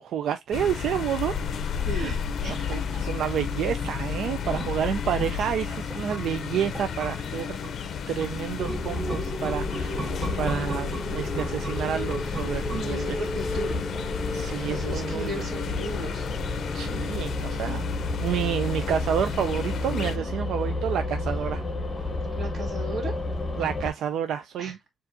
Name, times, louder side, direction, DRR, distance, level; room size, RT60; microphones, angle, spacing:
voice 1, 0.0-1.4 1.9-2.2 2.4-7.6 8.1-10.0 10.3-13.2 14.3-15.5 16.7-17.9 18.2-21.6 23.6-24.8, right 9 dB, 80° right, 0.4 m, -29 dB
sound 1, 0.5-20.2, left 7 dB, 55° left, 0.5 m, -33 dB
voice 2, 1.9-3.0 4.5-4.7 12.7-13.8 14.6-16.3 20.0-20.3 22.3-23.1 24.6-24.7, right 1 dB, 50° right, 2.0 m, -36 dB
sound 2, 3.8-13.3 13.6-13.7, right 3 dB, 20° right, 1.5 m, -40 dB
sound 3, 8.6-23.9, left 2 dB, 20° left, 0.8 m, -31 dB
6.7 x 2.5 x 2.6 m
cardioid pair, 155°, 0 cm